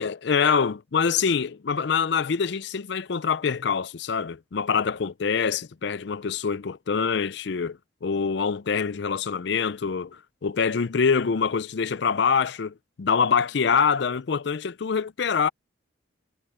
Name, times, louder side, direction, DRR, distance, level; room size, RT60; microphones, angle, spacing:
voice 1, 0.0-15.5, left 6 dB, 60° left, 0.5 m, -25 dB
head